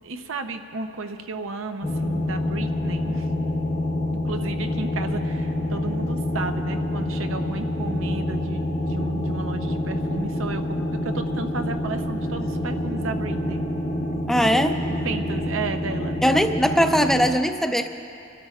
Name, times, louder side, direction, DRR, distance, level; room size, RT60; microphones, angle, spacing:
voice 1, 0.0-3.3 4.2-10.8 11.0-13.6 15.0-16.5, right 3 dB, 90° right, 7 dB, 0.7 m, -33 dB
sound 1, 1.8-17.3, left 1 dB, 35° left, 0.9 m, -27 dB
voice 2, 14.3-14.8 16.2-17.9, equal, ahead, 6 dB, 0.5 m, -20 dB
30.0 x 12.5 x 2.4 m, 2.6 s
head